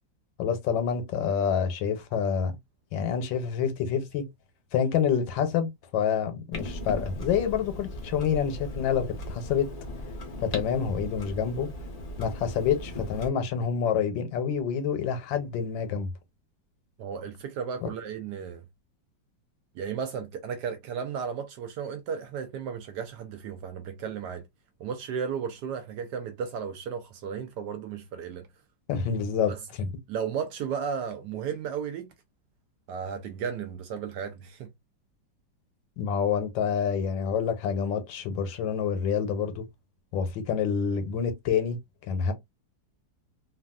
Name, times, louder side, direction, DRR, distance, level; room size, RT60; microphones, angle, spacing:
voice 1, 0.4-2.6 2.9-4.2 4.7-9.7 10.4-11.7 12.2-16.1 17.8-17.9 28.9-29.5 29.8-29.9 36.0-39.6 40.1-41.8 42.1-42.3, left 7 dB, 75° left, 1.4 m, -27 dB
Clock, 6.5-13.3, left 1 dB, 40° left, 0.5 m, -38 dB
voice 2, 17.0-18.6 19.7-24.5 24.8-28.5 29.5-29.6 30.1-32.1 32.9-34.7, right 7 dB, 75° right, 1.0 m, -34 dB
3.3 x 2.4 x 2.3 m
omnidirectional pair, 2.1 m